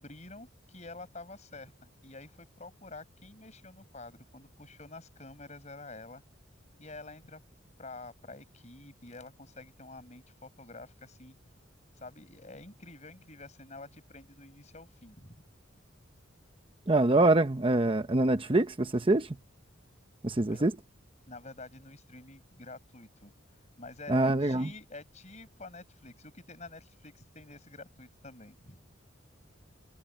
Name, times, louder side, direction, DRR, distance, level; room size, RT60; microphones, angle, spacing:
voice 1, 0.0-6.2 6.8-7.4 7.8-11.4 12.0-15.4 20.5-20.6 21.3-23.3 23.8-28.8, left 3 dB, 35° left, 7.0 m, -48 dB
voice 2, 16.9-19.3 20.2-20.7 24.1-24.7, right 2 dB, 25° right, 0.8 m, -25 dB
head